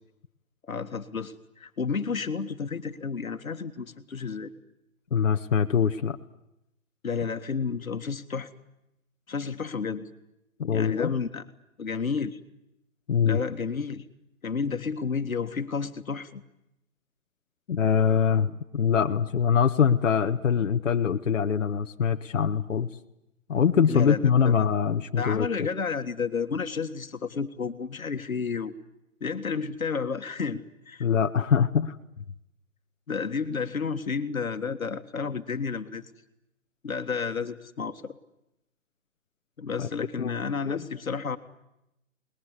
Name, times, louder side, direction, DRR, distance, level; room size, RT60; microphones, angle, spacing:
voice 1, 0.7-4.5 7.0-8.5 9.3-10.1 10.7-11.4 11.8-12.4 13.2-14.0 14.4-16.4 23.9-24.7 25.2-28.7 29.2-31.0 33.1-36.1 36.8-38.2 39.6-41.4, left 5 dB, 80° left, 9 dB, 1.7 m, -31 dB
voice 2, 5.1-6.2 10.6-11.1 13.1-13.4 17.7-22.9 23.5-25.7 31.0-32.0 39.8-40.8, left 7 dB, 65° left, 6 dB, 1.3 m, -24 dB
28.0 x 21.0 x 9.8 m, 0.87 s
figure-of-eight pair, 145°, 40 cm